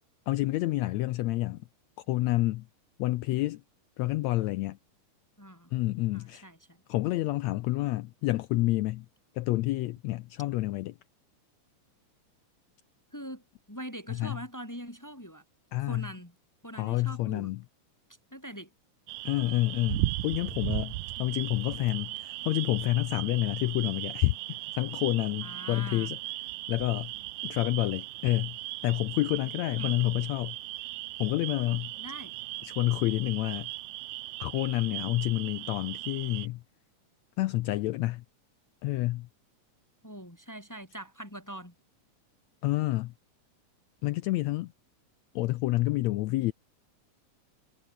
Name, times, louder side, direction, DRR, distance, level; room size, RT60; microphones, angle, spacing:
voice 1, 0.3-1.6 2.0-2.6 3.0-3.6 4.0-4.8 5.7-6.5 6.9-9.1 9.3-10.9 14.1-14.4 15.7-16.1 16.7-17.6 19.2-26.2 26.7-27.1 27.4-28.6 28.8-30.6 31.2-31.9 32.6-33.7 34.4-36.6 37.4-38.2 38.8-39.3 42.6-43.1 44.0-44.7 45.3-46.5, left 18 dB, 85° left, 1.5 m, -29 dB
voice 2, 5.4-5.7 6.1-6.8 13.1-15.4 15.9-16.3 16.6-17.5 18.3-18.7 21.2-21.3 25.4-26.1 29.8-29.9 32.0-32.3 40.0-41.7, equal, 5° left, 1.6 m, -43 dB
sound 1, 19.1-36.5, right 18 dB, 80° right, 2.0 m, -37 dB
omnidirectional pair, 3.8 m